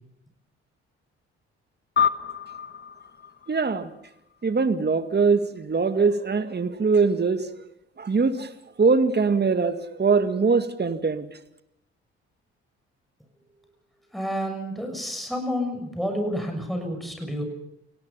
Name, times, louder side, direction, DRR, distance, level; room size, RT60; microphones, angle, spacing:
sound 1, 2.0-4.7, left 8 dB, 30° left, 1.2 m, -29 dB
voice 1, 3.5-3.9 4.4-7.5 8.0-8.5 8.8-11.3, right 4 dB, 30° right, 10 dB, 2.0 m, -22 dB
voice 2, 14.1-17.4, equal, ahead, 4 dB, 6.9 m, -29 dB
29.0 x 18.5 x 5.7 m, 0.80 s
hypercardioid pair, 45°, 33 cm